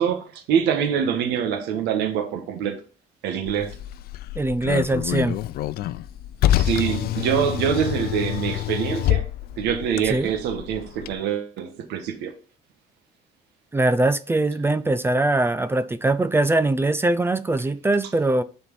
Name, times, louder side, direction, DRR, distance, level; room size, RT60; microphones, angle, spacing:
voice 1, 0.0-2.8 3.2-3.8 6.6-9.3 9.6-12.3, right 8 dB, 90° right, 1.4 m, -25 dB
Car, 3.5-11.1, left 14 dB, 65° left, 0.4 m, -27 dB
voice 2, 4.4-5.4 10.1-10.3 13.7-18.4, right 2 dB, 15° right, 0.5 m, -22 dB
7.1 x 4.5 x 5.3 m
cardioid pair, 110°, 17 cm